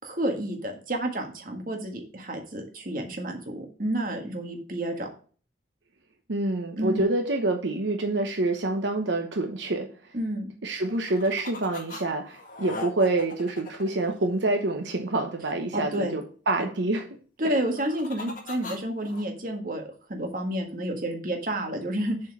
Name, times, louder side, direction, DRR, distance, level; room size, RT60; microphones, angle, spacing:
voice 1, 0.0-5.1 6.8-7.1 10.1-10.5 15.7-16.1 17.4-19.8 20.1-22.2, right 1 dB, 50° right, 3 dB, 1.6 m, -30 dB
voice 2, 6.3-9.9 10.6-17.0 17.4-17.5, right 2 dB, 80° right, 4 dB, 0.9 m, -27 dB
sound 1, 10.8-12.0 12.3-14.8 17.5-19.2, left 3 dB, 45° left, 1.8 m, -40 dB
7.5 x 4.5 x 6.0 m, 0.41 s
head